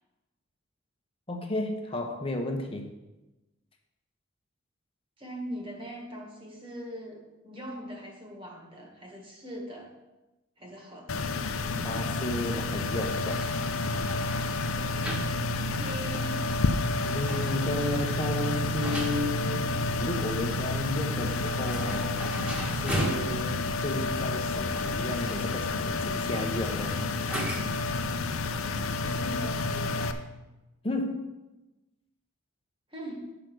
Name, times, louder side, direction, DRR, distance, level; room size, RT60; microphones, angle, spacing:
voice 1, 1.3-2.9 11.8-13.4 17.0-19.7 20.0-22.3 22.7-27.0 30.8-31.2, left 1 dB, 25° left, 3 dB, 1.0 m, -33 dB
voice 2, 5.2-9.9 10.6-11.3 15.5-16.5 29.0-30.3 32.9-33.3, equal, 25° right, 0 dB, 1.7 m, -41 dB
sound 1, 11.1-30.1, left 3 dB, 85° left, 0.6 m, -30 dB
sound 2, 12.8-27.9, right 1 dB, 5° right, 1.4 m, -39 dB
8.2 x 5.2 x 6.2 m, 1.0 s
head